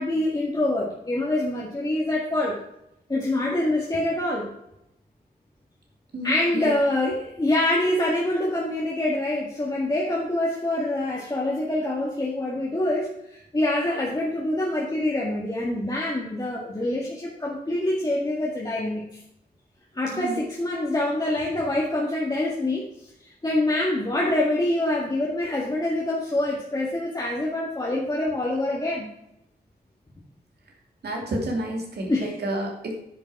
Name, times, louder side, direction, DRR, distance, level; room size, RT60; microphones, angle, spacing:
voice 1, 0.0-2.6 3.1-4.5 6.2-19.0 19.9-29.1 32.1-32.3, left 1 dB, 25° left, -4 dB, 1.8 m, -25 dB
voice 2, 6.1-6.7 20.1-20.4 31.0-33.0, right 1 dB, 75° right, 0 dB, 2.7 m, -30 dB
9.9 x 7.0 x 4.8 m, 0.81 s
wide cardioid pair, 135°, 17 cm